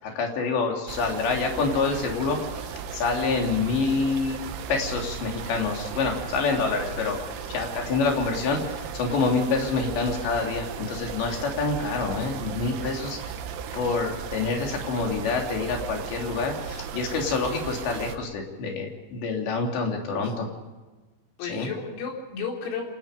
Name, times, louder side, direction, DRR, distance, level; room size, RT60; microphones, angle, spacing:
voice 1, 0.0-4.4 4.7-7.2 7.5-13.2 13.7-20.5 21.4-21.7, left 4 dB, 60° left, 1 dB, 5.3 m, -27 dB
sound 1, 0.9-18.2, right 7 dB, 85° right, 4.2 m, -36 dB
voice 2, 12.6-13.2 20.1-20.5 21.4-22.9, left 5 dB, 90° left, 0 dB, 6.5 m, -35 dB
28.0 x 19.0 x 5.2 m, 1.2 s
omnidirectional pair, 5.8 m